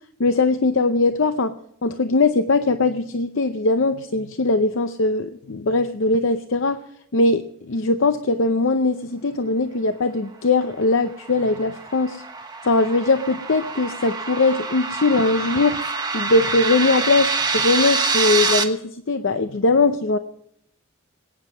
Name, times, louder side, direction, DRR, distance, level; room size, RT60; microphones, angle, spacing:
voice 1, 0.2-1.5 1.8-6.8 7.1-12.2 12.6-20.2, left 3 dB, 60° left, 10 dB, 0.6 m, -20 dB
sound 1, 10.9-18.6, right 4 dB, 20° right, 1.2 m, -26 dB
20.5 x 9.6 x 6.1 m, 0.72 s
head